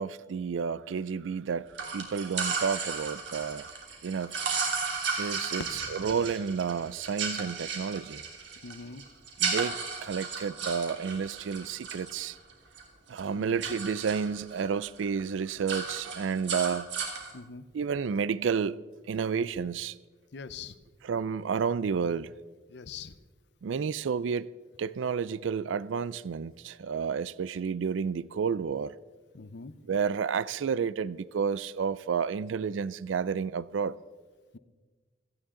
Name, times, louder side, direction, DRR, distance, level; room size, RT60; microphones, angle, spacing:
voice 1, 0.0-3.7 4.0-4.4 5.2-8.2 9.4-12.4 13.1-16.9 17.7-18.8 19.1-20.0 21.0-22.3 23.6-24.5 24.8-28.9 29.9-34.0, right 6 dB, 90° right, 0.4 m, -31 dB
sound 1, 1.7-12.8 13.1-14.7 15.0-15.2 15.5-17.3, right 5 dB, 75° right, 3.1 m, -34 dB
voice 2, 5.7-6.1 8.6-9.0 13.3-13.7 17.3-17.6 20.3-20.8 22.7-23.1 29.3-29.7, left 5 dB, 65° left, 0.7 m, -43 dB
17.0 x 16.0 x 3.8 m
head